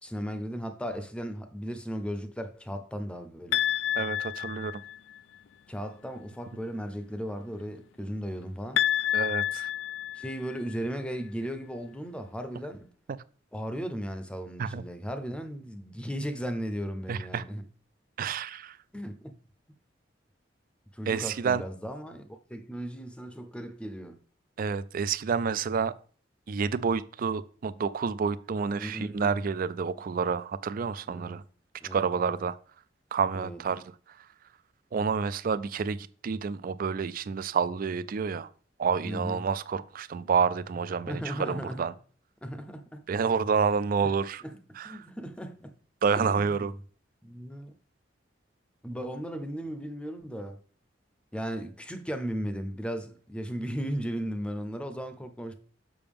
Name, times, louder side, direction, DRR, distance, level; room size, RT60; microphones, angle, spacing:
voice 1, 0.0-3.6 5.7-8.8 10.1-12.9 13.5-17.6 18.9-19.4 20.9-24.3 28.7-29.4 31.1-31.4 31.8-32.5 33.3-33.6 39.0-39.5 41.1-41.8 42.4-43.1 44.0-44.1 44.4-44.6 44.8-45.8 46.2-46.7 47.2-47.7 48.8-50.6 51.3-55.6, equal, 5° left, 0.6 m, -36 dB
sound 1, 3.5-5.2 8.8-10.8, left 12 dB, 85° left, 0.3 m, -29 dB
voice 2, 3.9-4.8 9.1-9.7 14.6-14.8 17.1-17.4 18.2-18.8 21.1-21.6 24.6-25.9 26.5-31.4 31.9-32.6 33.1-33.8 34.9-38.5 38.8-41.9 43.1-44.4 44.8-44.9 46.0-46.7, right 6 dB, 50° right, 0.4 m, -29 dB
6.9 x 5.6 x 3.5 m
head